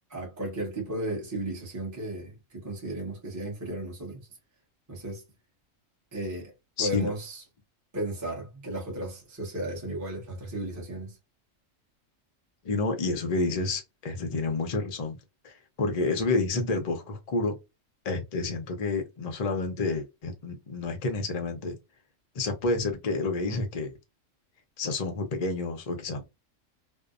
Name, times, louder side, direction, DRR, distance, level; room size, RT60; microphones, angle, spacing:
voice 1, 0.1-4.3 4.9-5.2 6.1-6.5 6.8-7.4 7.9-11.2, right 1 dB, 15° right, 0.7 m, -34 dB
voice 2, 6.8-7.1 12.6-15.2 15.4-17.6 18.0-21.7 22.3-23.9 24.8-26.2, left 3 dB, 45° left, 0.5 m, -29 dB
2.7 x 2.1 x 2.4 m
omnidirectional pair, 1.4 m